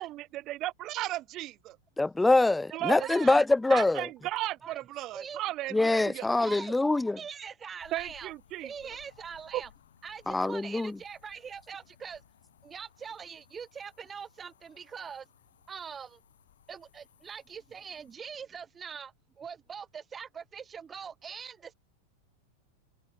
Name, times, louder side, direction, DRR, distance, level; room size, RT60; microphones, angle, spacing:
voice 1, 0.0-1.8 2.7-3.4 3.7-6.3 7.9-8.7 9.5-9.6, right 16 dB, 35° right, 1.9 m, -35 dB
voice 2, 2.0-4.1 5.7-7.2 10.3-10.9, left 2 dB, 5° left, 0.4 m, -24 dB
voice 3, 2.7-3.5 4.6-4.8 5.1-5.4 6.4-6.7 7.2-8.3 8.6-9.7 10.0-12.2 12.6-15.3 15.7-16.2 16.7-21.7, right 6 dB, 20° right, 1.2 m, -43 dB
sound 1, 7.8-18.2, left 9 dB, 65° left, 6.1 m, -61 dB
figure-of-eight pair, 90°, 0 cm